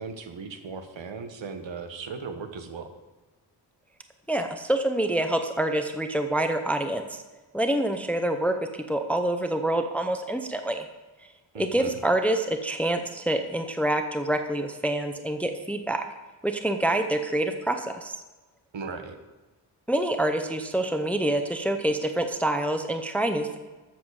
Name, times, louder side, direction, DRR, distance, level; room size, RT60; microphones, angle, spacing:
voice 1, 0.0-2.9 11.5-11.9 18.7-19.2, right 5 dB, 85° right, 7 dB, 1.3 m, -37 dB
voice 2, 4.3-7.2 7.5-10.9 11.6-16.1 16.4-18.2 19.9-23.6, right 1 dB, 5° left, 6 dB, 0.6 m, -26 dB
13.5 x 7.6 x 4.8 m, 1.2 s
wide cardioid pair, 160°, 44 cm